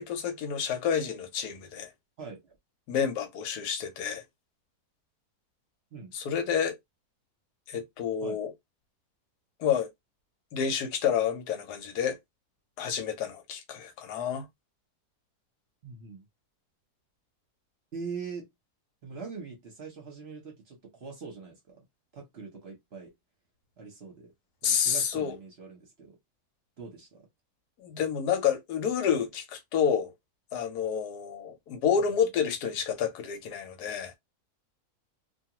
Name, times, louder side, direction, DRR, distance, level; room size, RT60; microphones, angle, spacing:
voice 1, 0.0-1.9 2.9-4.2 6.1-6.7 7.7-8.5 9.6-9.9 10.5-12.2 12.8-14.5 24.6-25.4 27.8-30.1 30.5-34.1, left 7 dB, 85° left, 1.2 m, -29 dB
voice 2, 2.2-2.5 5.9-6.1 8.2-8.4 15.8-16.2 17.9-18.5 19.0-21.8 22.1-23.1 23.8-24.3 24.6-26.2 26.8-27.3, right 5 dB, 50° right, 0.9 m, -42 dB
2.6 x 2.3 x 2.9 m
omnidirectional pair, 1.7 m